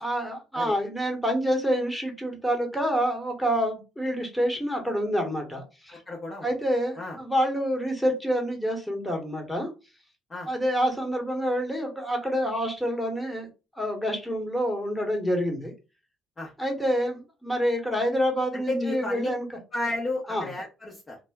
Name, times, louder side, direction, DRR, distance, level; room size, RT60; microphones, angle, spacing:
voice 1, 0.0-6.0 6.4-9.7 10.5-13.5 13.7-15.7 16.6-19.5 20.3-20.5, equal, 5° left, 2 dB, 1.1 m, -27 dB
voice 2, 5.9-6.5 7.0-7.2 10.3-10.5 16.4-16.5 18.5-19.3 19.7-21.2, left 2 dB, 30° left, -2 dB, 0.7 m, -32 dB
2.1 x 2.1 x 3.4 m, 0.30 s
supercardioid pair, 80°, 0 cm